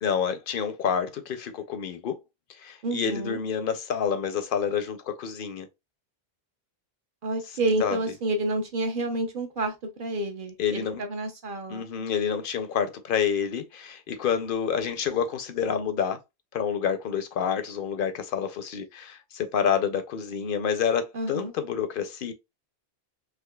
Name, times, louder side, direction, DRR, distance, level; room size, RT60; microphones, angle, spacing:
voice 1, 0.0-2.2 2.5-5.7 7.8-8.0 10.6-11.0 11.7-16.2 16.5-22.3, left 7 dB, 60° left, 0.7 m, -28 dB
voice 2, 2.8-3.4 7.2-9.7 10.0-11.9 21.1-21.5, right 2 dB, 55° right, 0.9 m, -29 dB
3.6 x 2.9 x 2.2 m
omnidirectional pair, 1.1 m